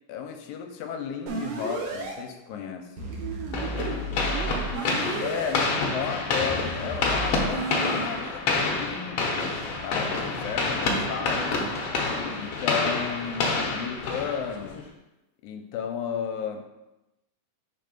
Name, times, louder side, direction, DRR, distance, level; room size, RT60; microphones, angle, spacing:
voice 1, 0.1-2.9 5.2-9.6 9.8-11.5 12.3-14.8 15.4-16.7, left 7 dB, 85° left, 4 dB, 2.0 m, -34 dB
sound 1, 1.3-2.1 3.0-5.5 6.4-8.1, right 2 dB, 65° right, 2.0 m, -33 dB
voice 2, 3.1-5.2 10.9-11.8, right 8 dB, 80° right, 2 dB, 1.5 m, -38 dB
sound 2, 3.5-14.8, left 3 dB, 70° left, 1.5 m, -28 dB
5.5 x 3.4 x 5.1 m, 0.95 s
omnidirectional pair, 3.4 m